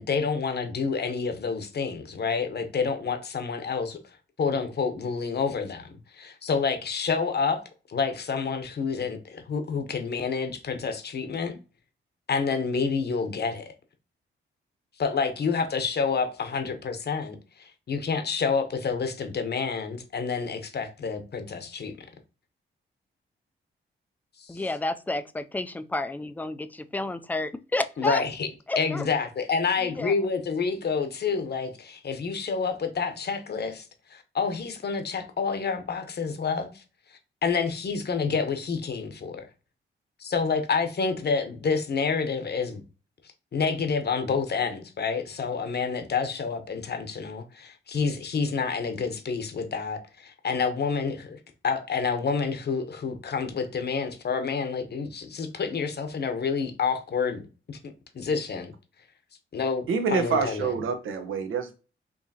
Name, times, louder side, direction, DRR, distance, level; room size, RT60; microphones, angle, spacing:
voice 1, 0.0-7.6 7.9-11.6 12.3-13.6 15.0-21.9 24.4-24.6 28.0-28.5 28.8-36.8 37.4-39.5 40.2-42.8 43.5-57.4 57.7-57.8 58.1-58.7 59.5-60.7, left 5 dB, 50° left, 0.9 m, -28 dB
voice 2, 24.5-28.2 28.7-29.1 29.8-30.1, left 2 dB, 10° left, 0.4 m, -30 dB
voice 3, 59.9-61.7, right 5 dB, 75° right, 0.8 m, -27 dB
4.7 x 2.8 x 2.7 m
cardioid pair, 75°, 21 cm